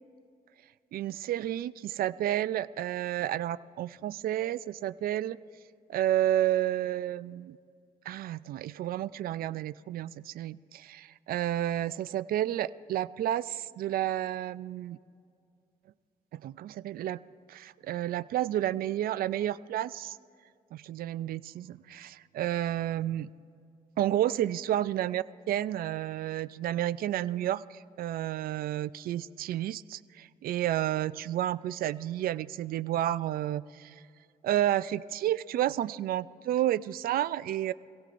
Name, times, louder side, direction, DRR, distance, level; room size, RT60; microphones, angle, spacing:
voice 1, 0.9-5.4 5.9-7.6 8.1-15.0 16.3-17.2 17.5-20.2 20.7-23.3 24.0-33.9 34.4-37.7, right 12 dB, 70° right, 16 dB, 0.4 m, -31 dB
25.5 x 16.5 x 2.5 m, 2.3 s
cardioid pair, 110°, 16 cm